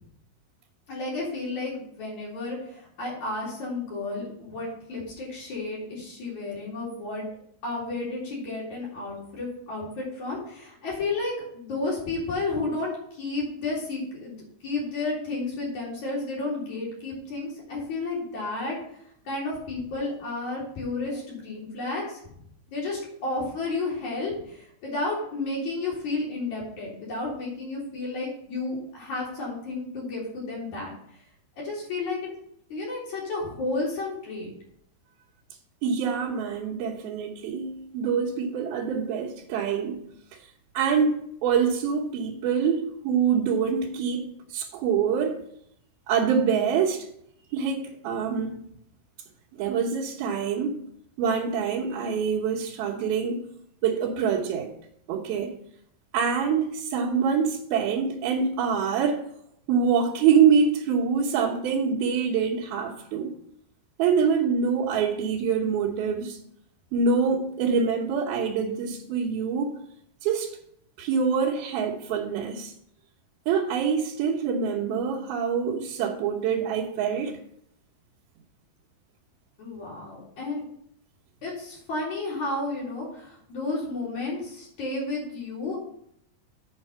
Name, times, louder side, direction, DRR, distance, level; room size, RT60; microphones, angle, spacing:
voice 1, 0.9-7.2 7.6-14.4 14.6-19.0 19.2-22.2 22.7-30.9 31.6-32.2 32.7-34.5 79.6-80.6 81.4-85.8, left 2 dB, 50° left, -5 dB, 4.8 m, -32 dB
voice 2, 35.8-40.0 40.7-45.4 46.1-47.1 47.5-48.6 49.6-50.8 51.2-53.4 53.8-54.7 55.1-55.5 56.1-59.2 59.7-63.3 64.0-66.4 66.9-69.8 70.2-70.5 71.0-72.7 73.5-77.3, right 6 dB, 80° right, -4 dB, 3.0 m, -25 dB
8.2 x 6.2 x 5.6 m, 0.70 s
omnidirectional pair, 4.3 m